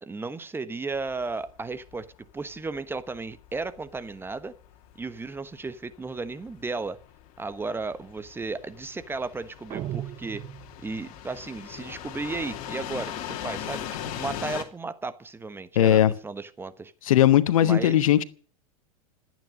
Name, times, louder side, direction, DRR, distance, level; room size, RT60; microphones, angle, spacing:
voice 1, 0.0-2.1 2.3-4.5 5.0-7.0 7.4-10.4 10.8-16.9 17.6-18.0, right 3 dB, 10° right, 1.2 m, -34 dB
sound 1, 0.9-14.6, left 11 dB, 50° left, 2.7 m, -40 dB
sound 2, 9.7-11.2, right 13 dB, 35° right, 0.7 m, -36 dB
voice 2, 15.8-16.1 17.1-18.2, left 11 dB, 70° left, 1.1 m, -18 dB
26.5 x 9.4 x 5.1 m
hypercardioid pair, 95°, 18 cm